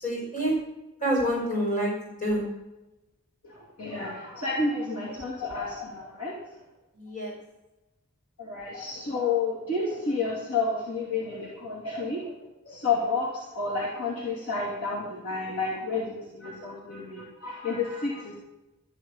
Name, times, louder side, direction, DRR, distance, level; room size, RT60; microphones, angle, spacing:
voice 1, 0.0-0.5 1.0-1.9 2.2-2.4 6.9-7.3, equal, 35° left, -4 dB, 5.1 m, -27 dB
voice 2, 3.4-6.4 8.4-12.3 12.6-18.3, left 3 dB, 75° left, -5 dB, 2.7 m, -30 dB
13.0 x 6.3 x 8.9 m, 0.99 s
head